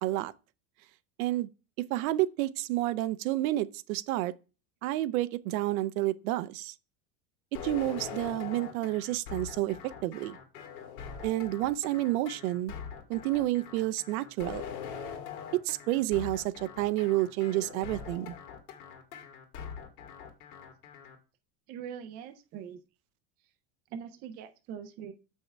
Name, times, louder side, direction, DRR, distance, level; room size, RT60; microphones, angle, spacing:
voice 1, 0.0-0.3 1.2-1.5 1.8-4.3 4.8-6.7 7.6-10.4 11.2-12.7 13.1-14.6 15.6-18.3, right 16 dB, 75° right, 0.6 m, -30 dB
sound 1, 7.5-21.2, left 7 dB, 80° left, 1.9 m, -42 dB
voice 2, 21.7-22.8 23.9-25.1, right 8 dB, 25° right, 0.3 m, -42 dB
7.1 x 5.6 x 3.2 m
supercardioid pair, 160°, 43 cm